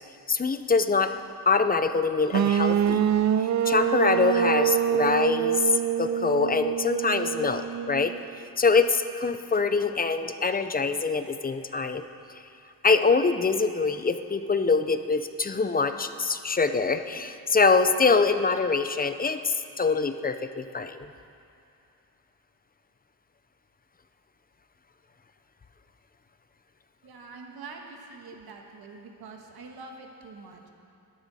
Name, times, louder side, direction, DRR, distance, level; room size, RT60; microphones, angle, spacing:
voice 1, 0.3-1.1 1.5-3.1 3.4-8.1 8.6-12.4 12.8-21.1, left 4 dB, 25° left, 9 dB, 0.6 m, -24 dB
sound 1, 2.3-8.2, right 9 dB, 45° right, 0.5 m, -25 dB
voice 2, 27.0-30.7, right 4 dB, 75° right, 2 dB, 1.6 m, -45 dB
18.5 x 11.5 x 4.2 m, 2.6 s
cardioid pair, 110°, 38 cm